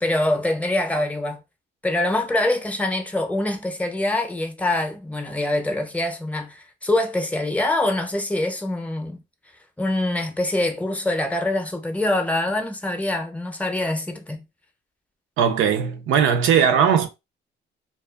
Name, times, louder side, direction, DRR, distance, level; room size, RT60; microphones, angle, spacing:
voice 1, 0.0-1.4 1.8-9.2 9.8-14.4, left 1 dB, 5° left, 0.6 m, -24 dB
voice 2, 15.4-17.1, right 7 dB, 90° right, 0.5 m, -19 dB
2.3 x 2.3 x 2.3 m
cardioid pair, 90°, 20 cm